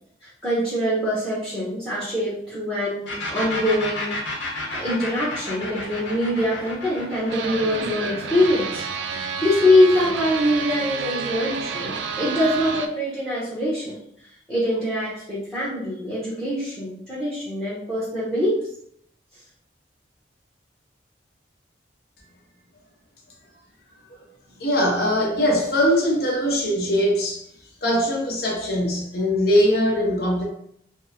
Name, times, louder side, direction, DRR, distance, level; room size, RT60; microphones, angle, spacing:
voice 1, 0.2-4.2 4.7-8.8 9.2-14.0 14.5-18.5, left 1 dB, 5° left, -8 dB, 0.7 m, -23 dB
sound 1, 3.1-10.6, left 2 dB, 90° left, 0.8 m, -33 dB
sound 2, 7.3-12.9, right 5 dB, 80° right, 0.3 m, -30 dB
voice 2, 24.6-27.4 27.8-30.4, equal, 55° left, -1 dB, 0.8 m, -21 dB
3.5 x 2.0 x 2.8 m, 0.70 s
head